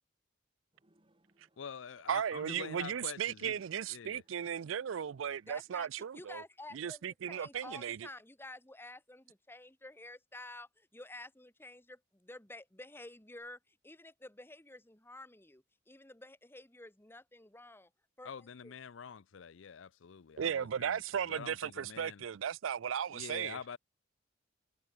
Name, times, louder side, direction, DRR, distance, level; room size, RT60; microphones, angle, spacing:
sound 1, 0.7-5.7, right 1 dB, 25° right, 3.5 m, -74 dB
voice 1, 1.6-3.6 3.9-4.2 18.2-22.3 23.1-23.8, left 6 dB, 75° left, 0.5 m, -46 dB
voice 2, 2.1-6.4 6.7-8.1 20.4-23.6, right 8 dB, 85° right, 0.4 m, -36 dB
voice 3, 5.5-5.9 6.1-17.9 18.2-18.7, left 2 dB, 10° left, 1.8 m, -51 dB
head